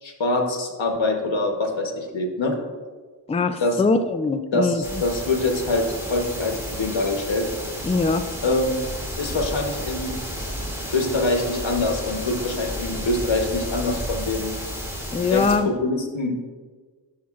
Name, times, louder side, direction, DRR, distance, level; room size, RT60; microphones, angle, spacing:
voice 1, 0.0-2.5 3.6-3.8 4.5-7.5 8.4-8.8 9.2-10.2 10.9-14.5 15.3-16.3, left 2 dB, 90° left, 3 dB, 0.9 m, -24 dB
voice 2, 3.3-4.8 7.8-8.3 15.1-15.7, left 3 dB, 15° left, 10 dB, 0.3 m, -22 dB
sound 1, 4.8-15.6, equal, 5° right, 2.3 m, -32 dB
11.5 x 6.2 x 2.4 m, 1.4 s
wide cardioid pair, 55°, 45 cm